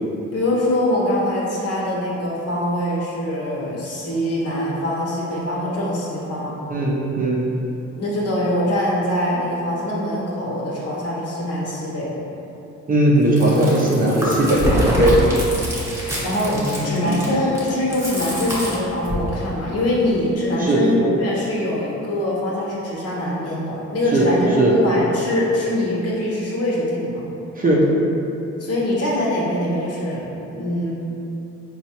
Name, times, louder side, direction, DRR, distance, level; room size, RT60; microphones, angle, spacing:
voice 1, 0.3-6.5 8.0-12.1 16.2-27.2 28.6-30.9, left 1 dB, 55° left, -5 dB, 0.9 m, -23 dB
voice 2, 6.7-7.5 12.9-15.2 16.5-17.2 20.6-20.9 24.1-24.2 24.6-24.7 27.6-27.8, right 1 dB, 30° right, -4 dB, 0.5 m, -18 dB
Chewing mastication, 13.2-19.3, equal, 10° right, 0.9 m, -25 dB
4.1 x 2.4 x 2.8 m, 3.0 s
cardioid pair, 90°, 30 cm